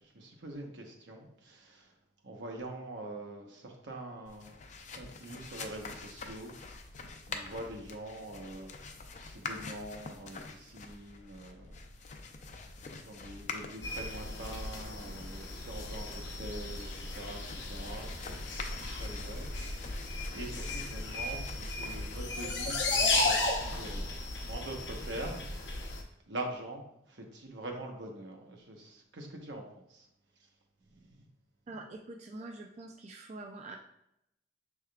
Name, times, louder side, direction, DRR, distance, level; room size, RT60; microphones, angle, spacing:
voice 1, 0.0-1.9 2.2-6.6 7.3-8.7 9.2-11.8 12.7-24.0 24.5-25.8 26.3-30.1 30.9-31.3, right 1 dB, 80° right, 2 dB, 0.9 m, -44 dB
sound 1, 4.2-24.2, left 3 dB, 45° left, 0.5 m, -45 dB
sound 2, 13.8-26.0, left 2 dB, 75° left, 0.8 m, -35 dB
voice 2, 31.7-33.8, right 2 dB, 40° right, 2 dB, 0.3 m, -45 dB
6.4 x 3.5 x 2.3 m, 0.79 s
head